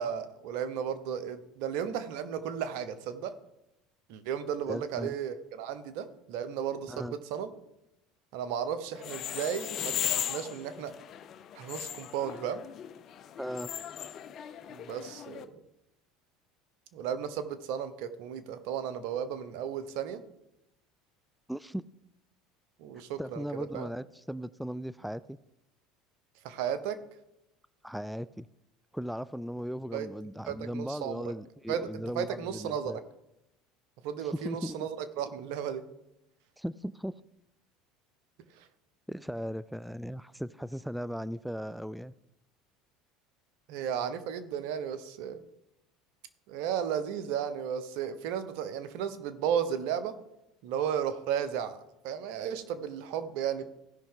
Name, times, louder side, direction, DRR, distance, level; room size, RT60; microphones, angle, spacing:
voice 1, 0.0-3.3 4.1-7.5 8.3-10.9 11.5-12.6 14.7-15.5 16.9-20.2 22.8-23.9 26.4-27.0 29.9-30.1 30.5-31.2 31.7-33.0 34.0-35.8 38.6-38.7 43.7-45.4 46.5-50.2 50.6-53.7, right 8 dB, 70° right, 12 dB, 1.0 m, -34 dB
voice 2, 4.7-5.2 6.9-7.2 13.4-13.7 21.5-21.8 23.2-25.4 27.8-28.5 28.9-33.0 34.3-34.9 36.6-37.1 39.1-42.1, equal, ahead, 17 dB, 0.3 m, -37 dB
sound 1, 9.0-15.4, left 10 dB, 50° left, 0.7 m, -37 dB
16.5 x 5.7 x 3.8 m, 0.86 s
hypercardioid pair, 85°, 0 cm